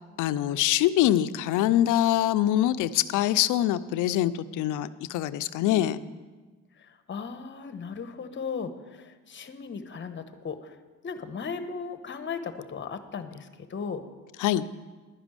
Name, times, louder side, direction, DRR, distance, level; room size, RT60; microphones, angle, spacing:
voice 1, 0.2-6.0 14.4-14.7, left 13 dB, 85° left, 13 dB, 0.5 m, -24 dB
voice 2, 5.6-5.9 6.8-10.8 11.0-14.1, left 5 dB, 40° left, 10 dB, 1.0 m, -37 dB
11.0 x 6.0 x 8.9 m, 1.3 s
cardioid pair, 90°, 30 cm